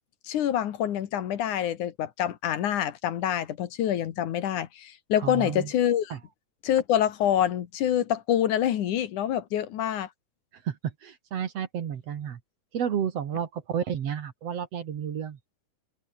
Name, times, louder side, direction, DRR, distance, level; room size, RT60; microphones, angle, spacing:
voice 1, 0.3-6.1 6.6-10.1, left 10 dB, 70° left, 2.8 m, -26 dB
voice 2, 5.2-5.7 6.1-6.2 10.6-10.8 11.0-12.4 12.7-15.4, right 8 dB, 55° right, 2.4 m, -31 dB
omnidirectional pair, 3.8 m